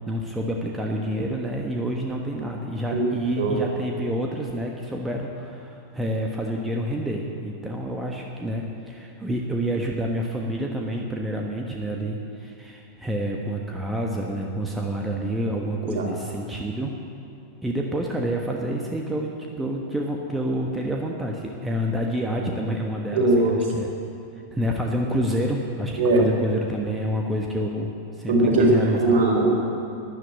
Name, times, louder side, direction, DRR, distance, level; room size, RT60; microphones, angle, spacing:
voice 1, 0.1-16.9 17.6-23.9 24.5-29.2, equal, 10° right, 0 dB, 1.3 m, -28 dB
voice 2, 23.1-23.6 26.0-26.2 28.3-28.7 28.9-29.5, right 2 dB, 55° right, -1 dB, 3.9 m, -20 dB
12.5 x 11.0 x 8.7 m, 2.6 s
figure-of-eight pair, 90°, 0 cm